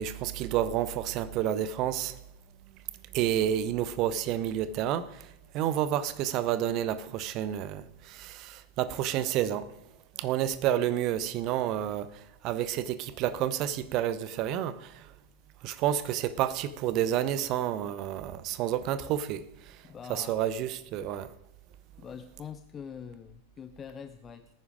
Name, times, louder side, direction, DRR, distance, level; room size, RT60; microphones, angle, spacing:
voice 1, 0.0-2.1 3.1-5.2 5.5-9.7 10.2-12.1 12.4-15.0 15.6-19.4 20.1-21.3, right 11 dB, 40° right, 0.8 m, -29 dB
voice 2, 19.8-20.4 22.0-24.5, left 7 dB, 25° left, 0.6 m, -44 dB
18.0 x 9.8 x 5.1 m
figure-of-eight pair, 90°, 0 cm